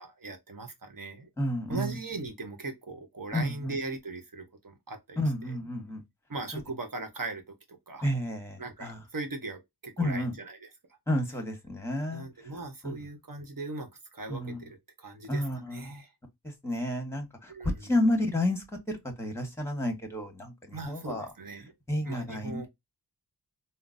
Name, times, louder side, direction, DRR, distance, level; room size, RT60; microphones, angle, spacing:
voice 1, 0.0-1.3 1.7-5.2 6.3-8.1 8.6-10.7 12.1-16.1 17.5-17.9 20.7-21.7 22.0-22.7, right 3 dB, 55° right, 1.0 m, -39 dB
voice 2, 1.4-2.0 3.3-3.7 5.2-6.0 6.5-6.6 8.0-9.0 10.0-10.3 11.1-12.2 12.8-12.9 14.3-14.6 15.3-15.8 16.6-18.6 19.2-21.2 21.9-22.6, left 1 dB, 5° left, 1.3 m, -30 dB
3.8 x 2.1 x 2.5 m
wide cardioid pair, 55°, 39 cm